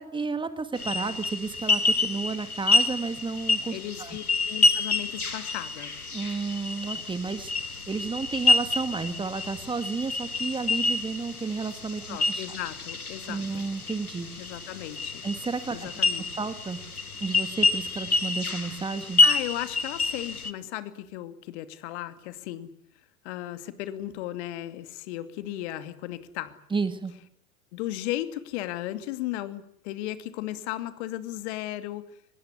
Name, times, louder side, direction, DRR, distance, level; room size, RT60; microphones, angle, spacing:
voice 1, 0.0-4.2 6.1-12.4 13.3-14.4 15.2-15.9 16.4-16.8 17.2-19.2 26.7-27.1, right 4 dB, 10° right, 11 dB, 1.8 m, -32 dB
sound 1, 0.8-20.5, left 3 dB, 90° left, 1.8 m, -28 dB
voice 2, 3.7-5.9 12.1-13.6 14.4-15.2 15.7-16.2 19.2-22.7 23.2-26.5 27.7-32.1, left 14 dB, 50° left, 11 dB, 2.6 m, -35 dB
24.5 x 21.0 x 9.8 m, 0.66 s
figure-of-eight pair, 95°, 43 cm